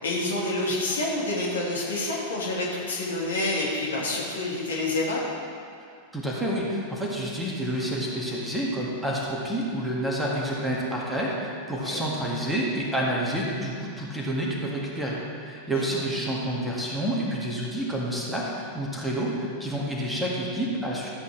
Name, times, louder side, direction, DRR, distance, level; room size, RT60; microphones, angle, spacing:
voice 1, 0.0-5.2 11.8-12.0 15.7-15.8, left 2 dB, 65° left, -4 dB, 2.0 m, -28 dB
voice 2, 6.1-21.1, right 1 dB, 5° right, -4 dB, 1.9 m, -29 dB
13.5 x 8.2 x 3.3 m, 2.3 s
figure-of-eight pair, 90°, 0 cm